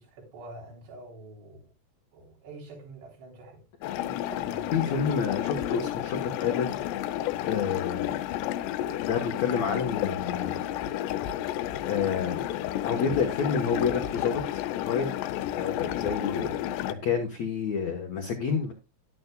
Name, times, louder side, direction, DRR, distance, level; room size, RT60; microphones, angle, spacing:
voice 1, 0.0-1.7 2.1-3.6 4.1-4.7, right 2 dB, 75° right, 5.8 m, -46 dB
sound 1, 3.8-16.9, left 12 dB, 90° left, 2.9 m, -31 dB
voice 2, 4.7-6.9 7.4-8.1 9.0-10.6 11.8-12.4 12.8-15.2 15.5-18.7, left 6 dB, 75° left, 1.6 m, -29 dB
12.5 x 11.0 x 2.2 m
omnidirectional pair, 4.8 m